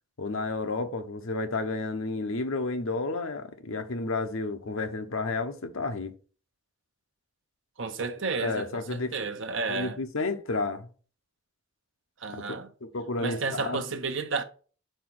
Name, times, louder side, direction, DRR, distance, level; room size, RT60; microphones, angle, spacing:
voice 1, 0.2-6.2 8.3-9.1 9.7-10.9 12.3-13.8, left 3 dB, 70° left, 0.8 m, -31 dB
voice 2, 7.8-10.0 12.2-12.7 13.2-14.4, right 4 dB, 60° right, 0.8 m, -32 dB
4.6 x 4.5 x 6.0 m
head